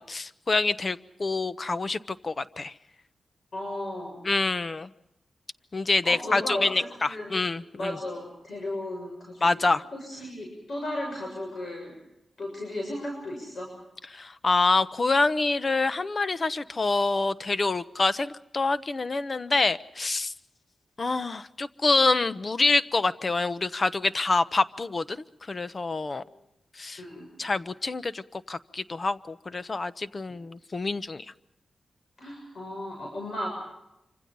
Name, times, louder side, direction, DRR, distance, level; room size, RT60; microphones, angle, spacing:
voice 1, 0.0-2.7 4.2-4.9 5.7-8.0 9.4-9.8 14.1-20.3 21.0-25.2 25.5-26.2 26.8-27.0 27.4-31.2, left 3 dB, 35° left, 14 dB, 0.9 m, -26 dB
voice 2, 3.5-4.3 6.0-7.5 7.8-11.9 12.4-13.7 26.2-26.3 27.0-27.3 32.2-33.5, left 1 dB, 55° left, 0 dB, 7.1 m, -35 dB
27.0 x 25.5 x 5.4 m, 0.87 s
wide cardioid pair, 115°, 0 cm